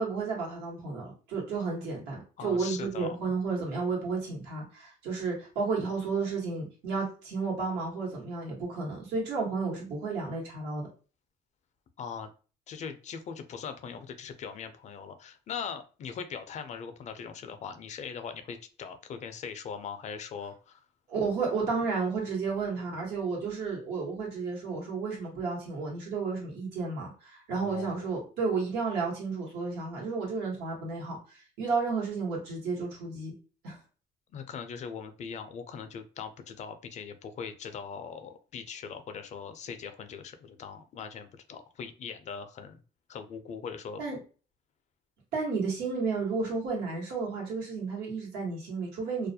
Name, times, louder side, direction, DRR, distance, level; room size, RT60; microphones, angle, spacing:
voice 1, 0.0-10.9 21.1-33.3 33.6-33.8 44.0-44.2 45.3-49.3, right 4 dB, 85° right, -2 dB, 1.2 m, -32 dB
voice 2, 2.4-3.2 12.0-12.3 12.7-20.8 27.5-28.1 34.3-42.8 43.1-44.0, left 6 dB, 45° left, 8 dB, 0.4 m, -40 dB
2.3 x 2.1 x 2.7 m, 0.36 s
cardioid pair, 110°, 17 cm